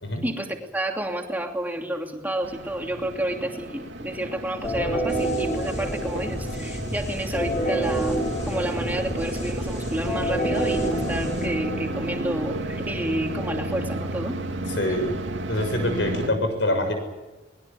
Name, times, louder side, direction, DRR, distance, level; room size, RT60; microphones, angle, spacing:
voice 1, 0.2-14.4, right 1 dB, 10° right, 2 dB, 2.8 m, -30 dB
sound 1, 2.4-16.3, right 1 dB, 90° right, 2.5 m, -33 dB
sound 2, 4.6-12.3, right 1 dB, 40° left, 7.5 m, -28 dB
voice 2, 14.7-15.1 15.5-16.9, left 1 dB, 90° left, 6 dB, 6.7 m, -25 dB
24.0 x 20.5 x 8.6 m, 1.1 s
head